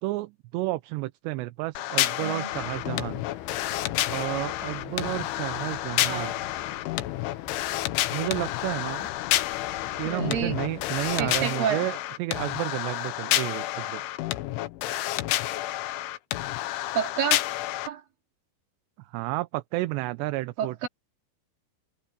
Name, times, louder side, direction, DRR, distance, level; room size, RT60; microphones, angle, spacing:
voice 1, 0.0-3.2 4.1-6.3 8.1-9.1 10.0-14.0 19.0-20.9, right 19 dB, 80° right, 2.7 m, -31 dB
sound 1, 1.8-17.9, left 15 dB, 90° left, 3.5 m, -30 dB
voice 2, 2.2-2.5 6.0-6.3 10.0-10.6 11.2-11.9 16.9-17.4 17.9-18.0 20.6-20.9, right 8 dB, 55° right, 3.9 m, -29 dB
sound 2, 2.5-11.5, left 13 dB, 70° left, 3.0 m, -40 dB
omnidirectional pair, 5.3 m